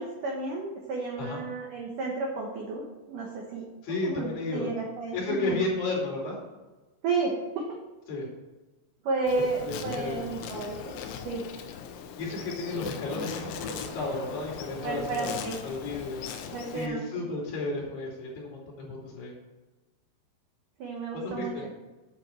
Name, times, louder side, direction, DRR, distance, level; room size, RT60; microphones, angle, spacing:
voice 1, 0.0-3.7 4.0-5.6 7.0-7.8 9.0-10.9 11.3-11.4 14.8-15.6 16.5-17.1 20.8-21.5, right 3 dB, 75° right, -1 dB, 1.9 m, -32 dB
voice 2, 3.8-4.7 5.1-6.4 8.1-8.3 9.6-10.3 12.2-15.3 15.6-16.2 16.7-19.4 21.1-21.7, left 2 dB, 60° left, -3 dB, 4.4 m, -33 dB
Insect, 9.3-16.9, left 7 dB, 90° left, 3.5 m, -39 dB
9.3 x 7.9 x 4.4 m, 1.1 s
omnidirectional pair, 5.6 m